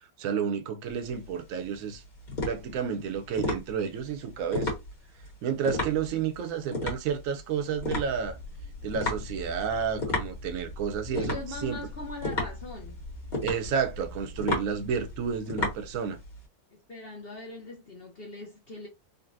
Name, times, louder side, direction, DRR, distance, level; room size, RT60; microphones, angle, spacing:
voice 1, 0.2-2.0 2.4-4.7 5.4-8.4 8.8-11.8 13.4-16.2, right 7 dB, 65° right, 0.9 m, -31 dB
sound 1, 0.9-16.4, left 2 dB, 30° left, 1.1 m, -34 dB
sound 2, 7.7-15.4, left 1 dB, 85° left, 1.6 m, -43 dB
voice 2, 11.1-13.0 16.7-18.9, left 2 dB, 60° left, 0.6 m, -41 dB
3.9 x 2.1 x 2.5 m
omnidirectional pair, 1.9 m